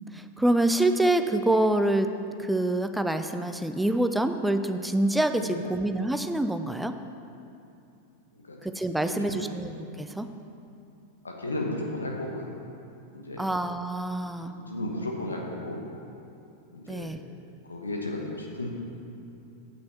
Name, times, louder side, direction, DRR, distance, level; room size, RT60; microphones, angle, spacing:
voice 1, 0.1-2.1 2.4-7.0 8.6-9.7 10.0-10.3 13.4-14.5 16.9-17.2, right 1 dB, 5° right, 8 dB, 0.4 m, -26 dB
voice 2, 5.4-5.7 8.3-8.6 9.0-9.5 11.2-12.5 13.1-13.5 14.2-15.9 16.7-17.1 17.6-18.7, left 1 dB, 80° left, 0 dB, 1.1 m, -34 dB
8.6 x 6.1 x 7.0 m, 2.7 s
figure-of-eight pair, 90°, 0 cm